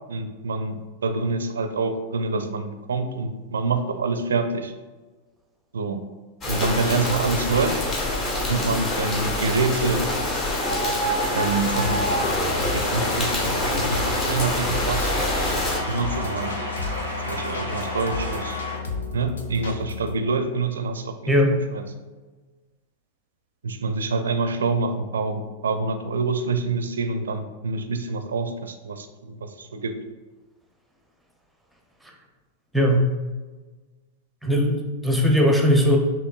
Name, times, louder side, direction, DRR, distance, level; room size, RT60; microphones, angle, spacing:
voice 1, 0.1-4.7 5.7-6.0 6.5-7.8 8.5-10.1 11.3-12.2 12.7-15.1 15.9-16.9 17.3-18.6 19.1-21.4 21.7-21.8 23.6-30.0, right 3 dB, 75° right, 7 dB, 0.4 m, -26 dB
sound 1, 6.4-15.8, left 1 dB, 30° left, 1.1 m, -26 dB
sound 2, 7.4-18.8, equal, 90° left, 1.2 m, -32 dB
sound 3, 11.8-20.1, left 5 dB, 75° left, 0.6 m, -33 dB
voice 2, 21.3-21.6 32.7-33.0 34.4-36.0, equal, ahead, 1 dB, 0.7 m, -19 dB
6.0 x 2.9 x 2.4 m, 1.3 s
figure-of-eight pair, 95°, 0 cm